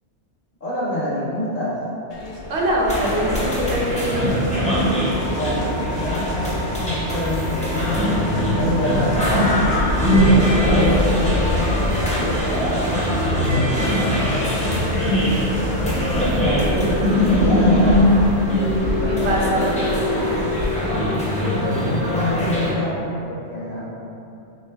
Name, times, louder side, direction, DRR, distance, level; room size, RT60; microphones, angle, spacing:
voice 1, 0.6-1.8 5.3-9.8 10.2-14.9 15.6-18.1 18.7-19.7 20.7-21.3 21.6-23.9, left 1 dB, 50° left, -6 dB, 0.8 m, -27 dB
sound 1, 2.1-20.8, left 2 dB, 80° left, 0.3 m, -30 dB
voice 2, 2.5-4.3 19.0-19.6, right 1 dB, 70° right, -3 dB, 0.9 m, -23 dB
sound 2, 2.9-22.7, equal, 10° left, 0.4 m, -21 dB
sound 3, 4.3-16.3, right 1 dB, 30° right, 0.7 m, -32 dB
3.2 x 3.0 x 3.4 m, 2.8 s
omnidirectional pair, 1.2 m